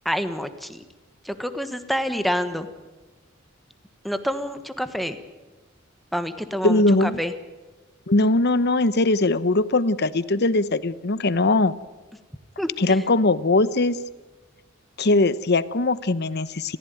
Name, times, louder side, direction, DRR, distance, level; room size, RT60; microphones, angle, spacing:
voice 1, 0.0-0.8 1.2-2.7 4.0-5.2 6.1-7.3 12.6-13.0, equal, ahead, 9 dB, 1.4 m, -27 dB
voice 2, 6.6-7.2 8.1-11.7 12.8-14.0 15.0-16.8, left 2 dB, 55° left, 16 dB, 0.9 m, -20 dB
28.5 x 15.0 x 9.2 m, 1.2 s
head